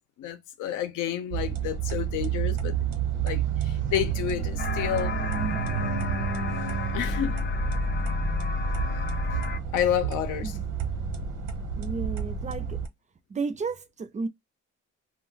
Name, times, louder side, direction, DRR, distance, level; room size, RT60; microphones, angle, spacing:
voice 1, 0.2-2.7 3.2-5.2 6.9-7.3 9.7-10.5, left 10 dB, 85° left, 0.7 m, -29 dB
sound 1, 1.3-12.9, right 7 dB, 75° right, 0.9 m, -30 dB
sound 2, 4.6-9.6, left 4 dB, 40° left, 0.5 m, -31 dB
voice 2, 11.8-12.8 13.3-14.3, right 4 dB, 25° right, 0.5 m, -33 dB
2.3 x 2.1 x 3.8 m
cardioid pair, 90°, 30 cm